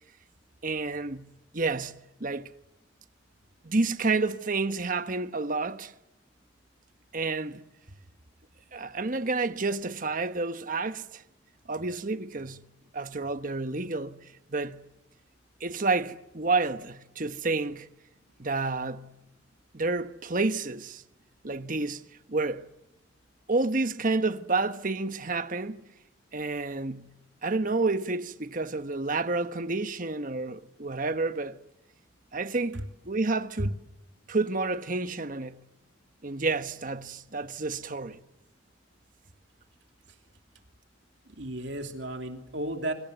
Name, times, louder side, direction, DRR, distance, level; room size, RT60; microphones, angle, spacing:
voice 1, 0.6-2.5 3.6-5.9 7.1-7.6 8.7-11.2 11.7-12.7 12.9-14.9 15.6-17.9 18.4-19.2 19.7-21.0 21.4-22.0 22.3-22.7 23.5-25.8 26.3-31.6 32.3-33.7 34.3-35.7 36.2-38.2, right 3 dB, 45° right, 1.2 m, -30 dB
voice 2, 41.3-42.9, right 1 dB, 70° right, 3.0 m, -33 dB
28.5 x 25.5 x 8.2 m
head